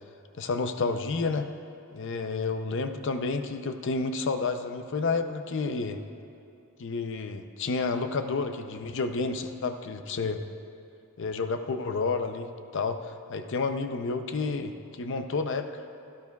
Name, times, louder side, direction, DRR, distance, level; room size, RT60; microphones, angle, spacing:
voice 1, 0.4-1.5 1.9-6.0 6.8-10.4 11.2-15.8, left 4 dB, 60° left, 7 dB, 0.5 m, -30 dB
16.5 x 12.0 x 2.3 m, 2.5 s
head